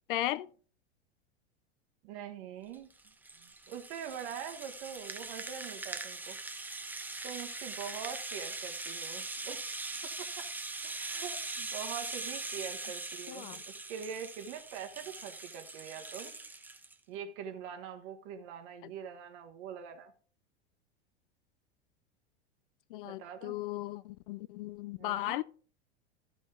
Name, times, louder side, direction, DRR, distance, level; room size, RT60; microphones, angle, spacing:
voice 1, 0.1-0.5 13.3-13.6 18.8-18.9 22.9-25.4, left 15 dB, 50° left, 0.5 m, -36 dB
voice 2, 2.0-2.9 3.4-6.4 7.2-9.6 10.0-10.5 10.8-16.3 17.1-20.1 23.0-23.5 25.0-25.4, right 8 dB, 50° right, 1.2 m, -44 dB
Rattle (instrument), 2.7-16.9, right 3 dB, 5° right, 0.8 m, -41 dB
14.0 x 5.3 x 3.7 m
figure-of-eight pair, 85°, 33 cm